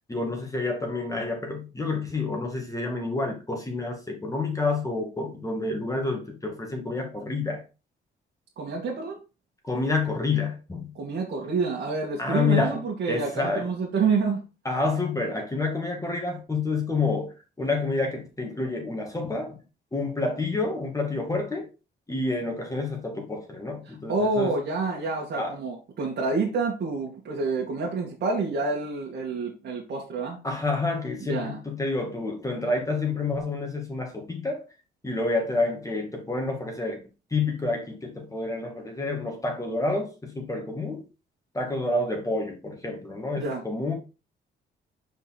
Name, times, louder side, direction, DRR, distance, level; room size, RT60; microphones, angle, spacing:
voice 1, 0.1-7.6 9.6-10.9 12.2-12.8 13.1-13.7 14.7-19.6 19.9-21.7 22.1-24.5 25.4-25.6 30.4-34.7 35.0-37.0 37.3-41.0 41.5-43.9, left 3 dB, 15° left, 2.3 m, -28 dB
voice 2, 8.6-9.2 10.9-14.4 24.1-30.4 31.2-31.6 43.4-43.6, right 4 dB, 60° right, 2.3 m, -28 dB
5.3 x 5.2 x 4.3 m
cardioid pair, 90°, 20 cm